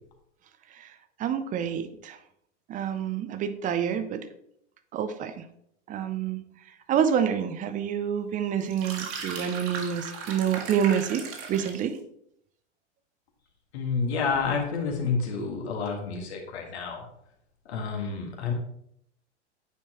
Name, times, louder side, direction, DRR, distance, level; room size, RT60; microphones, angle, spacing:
voice 1, 1.2-2.2 2.7-4.3 4.9-5.4 5.9-6.4 6.9-12.0, right 8 dB, 20° right, 10 dB, 0.6 m, -28 dB
sound 1, 8.6-11.9, right 5 dB, 40° right, 1.6 m, -37 dB
voice 2, 13.7-17.1 17.7-18.5, left 5 dB, 65° left, 2 dB, 1.8 m, -29 dB
9.1 x 4.5 x 2.9 m, 0.73 s
hypercardioid pair, 100°, 36 cm